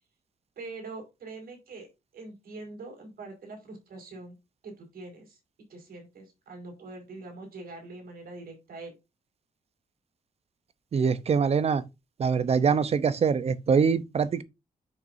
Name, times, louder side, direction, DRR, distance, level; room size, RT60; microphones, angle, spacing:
voice 1, 0.6-1.9 2.1-4.3 4.6-5.4 5.7-8.9, right 3 dB, 90° right, 4.8 m, -43 dB
voice 2, 10.9-11.8 12.2-14.4, right 6 dB, 45° right, 0.7 m, -24 dB
10.5 x 6.0 x 2.6 m
wide cardioid pair, 175°, 15 cm